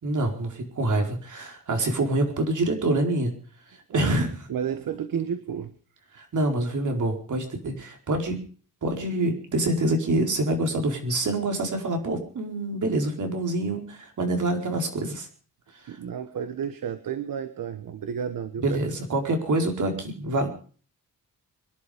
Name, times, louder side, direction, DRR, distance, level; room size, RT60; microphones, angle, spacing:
voice 1, 0.0-3.3 3.9-4.4 6.1-8.4 8.8-15.3 15.7-16.0 18.6-20.5, right 2 dB, 60° right, 3 dB, 4.5 m, -26 dB
voice 2, 4.5-5.7 15.9-18.6, right 8 dB, 75° right, 10 dB, 1.3 m, -31 dB
25.0 x 11.0 x 5.1 m, 0.42 s
wide cardioid pair, 140°, 34 cm